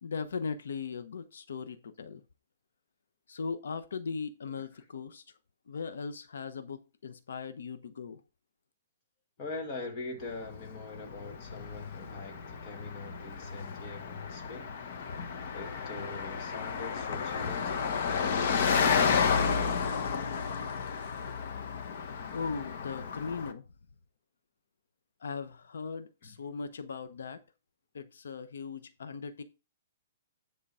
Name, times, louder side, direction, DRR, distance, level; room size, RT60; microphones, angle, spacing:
voice 1, 0.0-2.2 3.3-5.2 5.7-8.2 22.3-23.6 25.2-27.4 27.9-29.4, left 5 dB, 85° left, 0.9 m, -38 dB
voice 2, 9.4-14.8 15.5-19.5 26.2-26.4, left 3 dB, 25° left, 1.9 m, -43 dB
Car passing by, 10.3-23.5, left 6 dB, 45° left, 1.2 m, -32 dB
10.0 x 3.8 x 5.5 m
hypercardioid pair, 165°, 0 cm